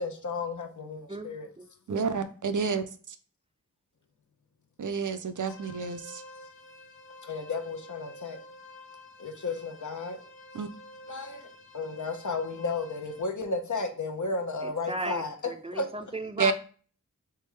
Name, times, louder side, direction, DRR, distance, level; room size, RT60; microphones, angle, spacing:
voice 1, 0.0-1.5 7.2-8.4 9.2-10.2 11.1-11.5 11.7-15.3 15.7-15.9, left 3 dB, 65° left, 0.8 m, -33 dB
voice 2, 1.1-2.1 14.6-16.5, right 2 dB, 20° right, 0.4 m, -37 dB
voice 3, 1.9-3.2 4.8-6.2 10.5-10.7 16.4-16.5, right 5 dB, 70° right, 0.5 m, -29 dB
sound 1, 5.3-13.2, left 1 dB, 40° left, 1.3 m, -50 dB
3.5 x 3.4 x 3.3 m
wide cardioid pair, 50°, 32 cm